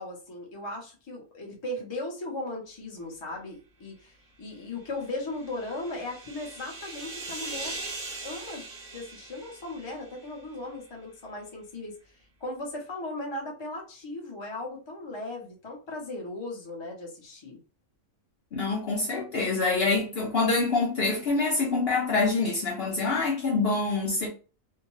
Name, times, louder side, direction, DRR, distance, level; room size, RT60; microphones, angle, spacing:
voice 1, 0.0-7.8 8.2-8.6 8.9-12.1 12.4-17.6, left 2 dB, 25° left, 0.6 m, -37 dB
sound 1, 4.8-10.4, right 3 dB, 45° right, 0.7 m, -41 dB
voice 2, 18.5-24.3, left 3 dB, 55° left, 0.8 m, -26 dB
2.7 x 2.1 x 3.0 m
omnidirectional pair, 1.4 m